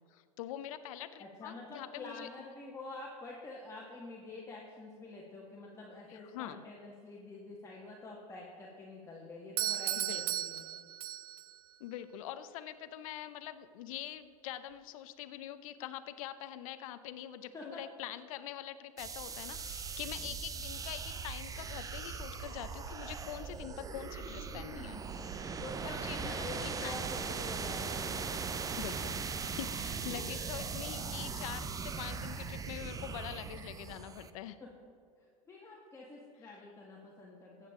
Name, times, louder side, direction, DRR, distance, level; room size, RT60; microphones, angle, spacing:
voice 1, 0.0-2.3 6.1-6.6 9.9-10.4 11.8-27.4 28.8-34.6, left 12 dB, 65° left, 12 dB, 0.7 m, -44 dB
voice 2, 1.2-10.6 17.5-17.8 25.6-28.3 34.6-37.7, left 2 dB, 15° left, -4 dB, 1.7 m, -47 dB
Doorbell, 9.6-11.6, right 12 dB, 75° right, 0.4 m, -35 dB
sound 1, 19.0-34.3, right 5 dB, 20° right, 0.6 m, -39 dB
14.5 x 8.6 x 3.8 m, 2.4 s
hypercardioid pair, 105°, 19 cm